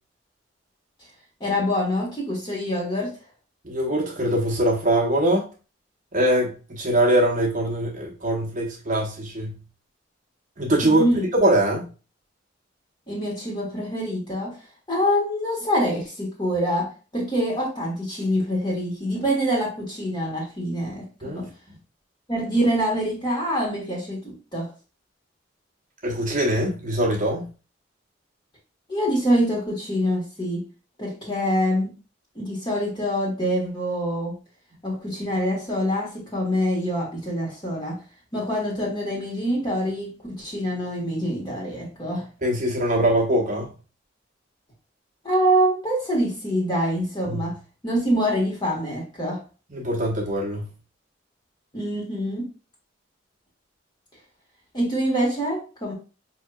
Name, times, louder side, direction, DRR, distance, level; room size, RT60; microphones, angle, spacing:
voice 1, 1.4-3.1 10.8-11.2 13.1-14.5 14.9-21.5 22.3-24.7 28.9-30.6 31.0-31.9 32.3-34.4 34.8-38.0 38.3-42.3 45.2-47.5 47.8-49.4 51.7-52.5 54.7-55.9, equal, 25° left, 1.4 m, -25 dB
voice 2, 3.6-5.5 6.1-9.6 10.6-11.0 11.3-11.9 21.2-21.5 26.0-27.5 42.4-43.7 47.3-47.5 49.7-50.7, right 1 dB, 45° right, 0.9 m, -22 dB
5.4 x 2.8 x 2.3 m
head